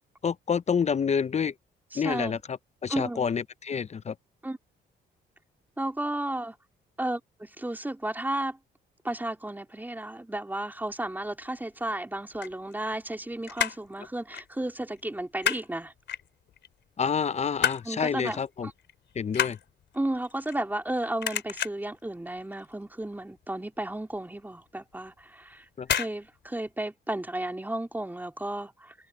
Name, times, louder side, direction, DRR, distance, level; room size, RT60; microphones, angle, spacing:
voice 1, 0.2-1.5 1.9-4.1 17.0-18.7 19.2-19.6 25.8-25.9, left 6 dB, 35° left, 0.6 m, -28 dB
voice 2, 1.9-2.4 2.9-3.4 4.4-4.6 5.8-6.6 7.0-8.6 9.0-15.9 17.8-18.7 19.9-28.9, right 1 dB, 10° right, 4.0 m, -33 dB
sound 1, 12.2-13.2 13.4-13.9 14.3-14.5 14.8-15.7 16.1-16.7 17.1-17.9 18.3-18.5 18.8-20.9 21.2-22.0 22.4-22.7 23.0-23.1 23.4-23.5 24.0-24.1 24.9-25.2 25.8-26.2 26.4-26.5, left 9 dB, 65° left, 4.0 m, -30 dB
cardioid pair, 90°, 20 cm